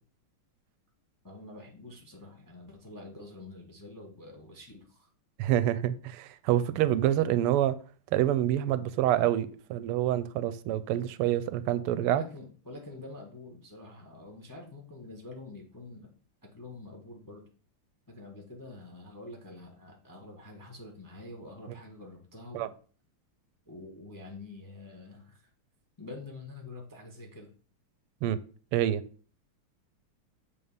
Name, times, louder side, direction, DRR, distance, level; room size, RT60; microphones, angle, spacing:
voice 1, 1.2-5.1 12.1-16.1 16.5-17.4 18.1-22.7 23.7-25.5 26.0-27.5, left 2 dB, 15° left, 1 dB, 0.7 m, -46 dB
voice 2, 5.4-7.7 8.1-12.2 22.5-22.7 28.2-28.4 28.7-29.0, right 12 dB, 90° right, 14 dB, 1.5 m, -27 dB
7.2 x 3.5 x 5.4 m, 0.40 s
omnidirectional pair, 2.4 m